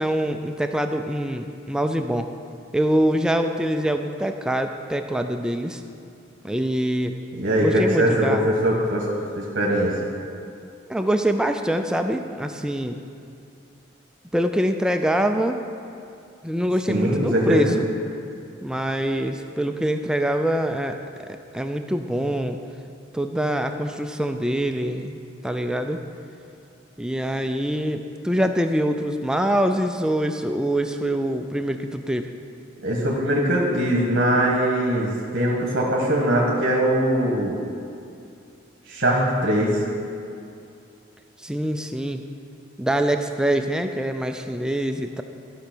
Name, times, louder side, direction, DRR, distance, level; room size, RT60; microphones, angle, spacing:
voice 1, 0.0-2.3 2.7-5.8 6.4-7.2 7.6-8.5 10.9-13.0 14.3-15.6 16.4-17.9 18.6-21.0 21.3-22.6 23.1-26.0 27.0-32.3 41.4-42.2 42.8-45.2, right 1 dB, 5° right, 6 dB, 0.3 m, -24 dB
voice 2, 7.3-9.0 9.4-10.0 16.9-17.8 32.8-37.6 38.9-39.8, equal, 60° right, -2 dB, 1.4 m, -21 dB
13.0 x 5.6 x 6.1 m, 2.6 s
head